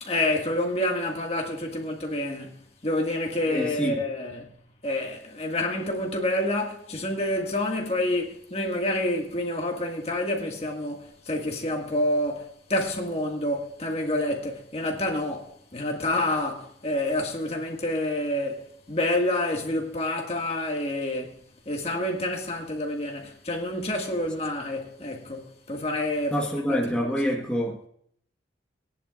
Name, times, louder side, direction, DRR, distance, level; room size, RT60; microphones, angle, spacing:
voice 1, 0.0-26.4 26.7-26.8, left 1 dB, 35° left, 1.9 m, -28 dB
voice 2, 3.5-4.0 26.3-27.9, equal, 5° left, 1.3 m, -26 dB
19.0 x 10.5 x 2.5 m
head